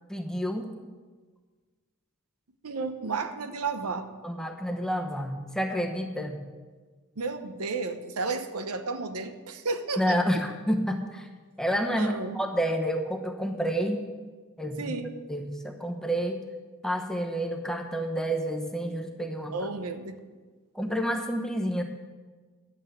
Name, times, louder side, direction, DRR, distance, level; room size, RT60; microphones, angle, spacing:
voice 1, 0.1-0.7 4.2-6.4 10.0-11.3 11.6-14.0 14.6-15.0 15.3-16.4 16.8-19.5 20.7-21.8, equal, 5° left, 3 dB, 0.9 m, -29 dB
voice 2, 2.6-4.1 7.2-10.4 11.9-12.4 14.8-15.1 19.5-20.2, right 3 dB, 90° right, 8 dB, 0.9 m, -32 dB
11.5 x 7.3 x 8.1 m, 1.4 s
head